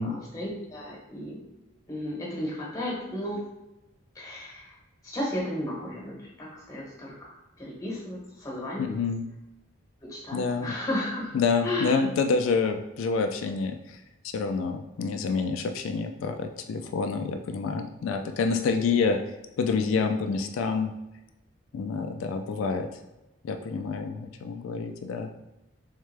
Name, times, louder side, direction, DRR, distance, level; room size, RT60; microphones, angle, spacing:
voice 1, 0.0-1.4 1.9-3.4 4.1-4.7 5.0-9.0 10.0-11.4 11.6-12.0, left 1 dB, 15° left, -4 dB, 1.1 m, -34 dB
voice 2, 8.8-9.2 10.3-10.7 11.3-14.0 14.3-19.2 19.6-20.9 21.7-22.9 23.4-25.3, left 4 dB, 90° left, 5 dB, 0.3 m, -27 dB
3.6 x 3.3 x 3.3 m, 0.98 s
head